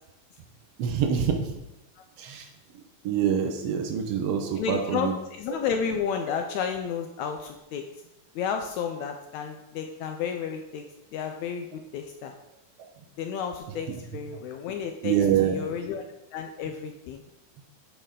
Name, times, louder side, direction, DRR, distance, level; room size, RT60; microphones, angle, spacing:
voice 1, 0.8-1.5 2.2-2.5 3.0-5.1 15.0-15.6, right 8 dB, 80° right, 4 dB, 1.4 m, -25 dB
voice 2, 4.6-7.8 8.3-10.8 11.1-12.3 13.2-16.0 16.3-17.2, left 7 dB, 85° left, 5 dB, 1.7 m, -32 dB
9.2 x 6.4 x 3.8 m, 0.90 s
omnidirectional pair, 3.8 m